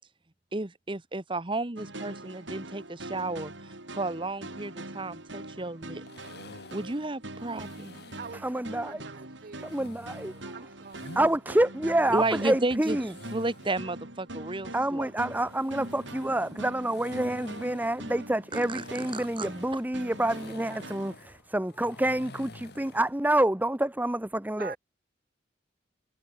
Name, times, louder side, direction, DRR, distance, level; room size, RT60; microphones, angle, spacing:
voice 1, 0.5-3.5 4.0-6.0 6.7-7.9 12.1-13.0 13.3-15.1 18.5-18.8 19.1-19.5, right 2 dB, 25° right, 1.2 m, -32 dB
sound 1, 1.8-21.2, right 2 dB, 80° right, 6.6 m, -43 dB
sound 2, 6.1-8.5 9.5-11.4 11.8-13.8 15.2-23.2, left 2 dB, 60° left, 4.5 m, -49 dB
voice 2, 8.3-9.0 9.6-10.4 11.2-13.1 14.7-24.8, right 1 dB, 10° right, 0.9 m, -28 dB
voice 3, 8.8-9.7 10.5-11.2 20.7-20.9 24.6-24.8, right 6 dB, 50° right, 0.6 m, -44 dB
head